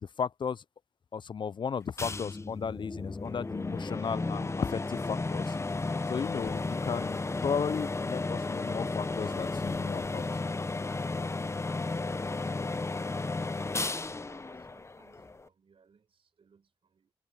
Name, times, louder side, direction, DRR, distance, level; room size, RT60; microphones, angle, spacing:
voice 1, 0.0-0.6 1.1-5.6 6.1-10.3, left 6 dB, 50° left, 0.4 m, -35 dB
sound 1, 2.0-15.5, left 3 dB, 25° left, 0.8 m, -34 dB
voice 2, 12.5-13.5 13.8-17.1, right 6 dB, 60° right, 5.4 m, -63 dB
supercardioid pair, 45°, 10 cm